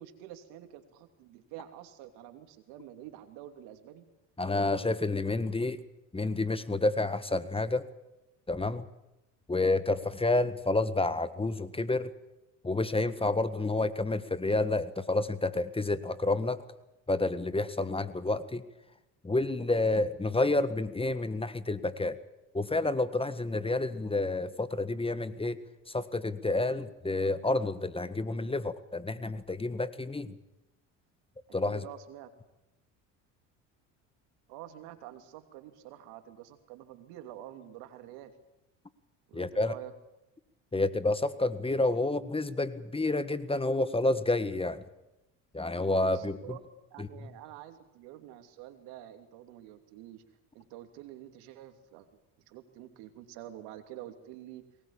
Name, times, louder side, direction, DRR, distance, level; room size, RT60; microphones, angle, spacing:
voice 1, 0.0-4.0 31.6-32.3 34.5-38.3 39.3-39.9 46.1-46.6 46.9-50.2 50.5-52.1 52.5-54.6, right 12 dB, 75° right, 7 dB, 3.0 m, -47 dB
voice 2, 4.4-5.8 6.1-7.9 8.5-8.8 9.5-12.1 12.6-16.7 17.1-18.6 19.2-22.2 22.5-25.6 25.9-30.4 31.5-31.8 39.3-39.7 40.7-44.8 45.5-46.4 47.0-47.1, left 2 dB, 15° left, 13 dB, 1.6 m, -29 dB
23.5 x 20.0 x 8.7 m, 0.92 s
supercardioid pair, 80°, 38 cm